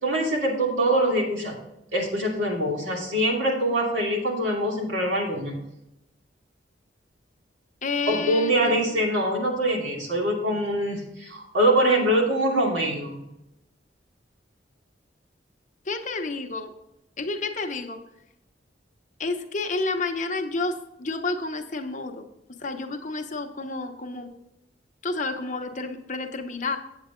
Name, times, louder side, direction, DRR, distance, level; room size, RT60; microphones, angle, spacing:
voice 1, 0.0-1.6 1.9-5.5 8.1-13.2, right 1 dB, 90° right, -1 dB, 2.7 m, -24 dB
voice 2, 7.8-8.8 15.9-16.7 17.2-18.0 19.2-20.7 21.0-22.3 22.6-24.3 25.0-26.8, left 3 dB, 45° left, 5 dB, 0.9 m, -30 dB
8.2 x 8.1 x 3.7 m, 0.85 s
head